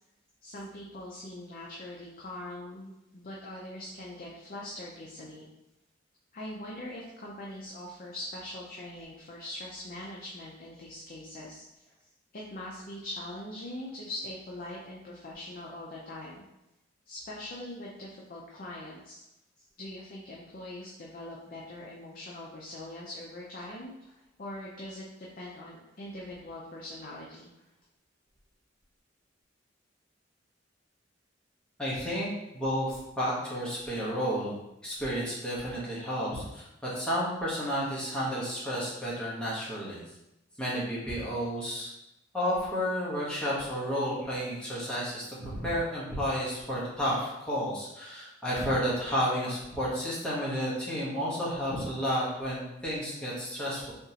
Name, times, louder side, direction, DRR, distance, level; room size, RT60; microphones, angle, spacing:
voice 1, 0.4-5.5 6.3-11.6 12.3-16.4 17.1-19.2 19.8-23.9 24.4-27.5, left 1 dB, 50° left, -4 dB, 0.5 m, -42 dB
voice 2, 31.8-40.0 40.6-41.9 42.3-53.9, equal, 5° left, -8 dB, 1.0 m, -31 dB
3.6 x 2.9 x 2.8 m, 0.91 s
head